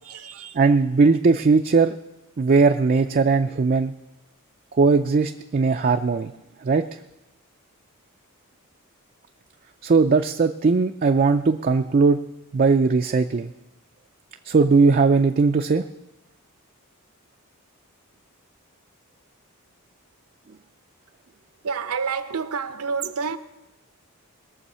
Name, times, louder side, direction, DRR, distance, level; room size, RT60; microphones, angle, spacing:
voice 1, 0.0-0.6 21.6-23.4, right 5 dB, 75° right, 0.7 m, -29 dB
voice 2, 0.6-2.0 2.4-3.9 4.7-6.3 6.6-6.8 9.8-12.2 12.5-13.5 14.4-15.8, right 4 dB, 40° right, 0.4 m, -19 dB
20.5 x 7.1 x 5.5 m
head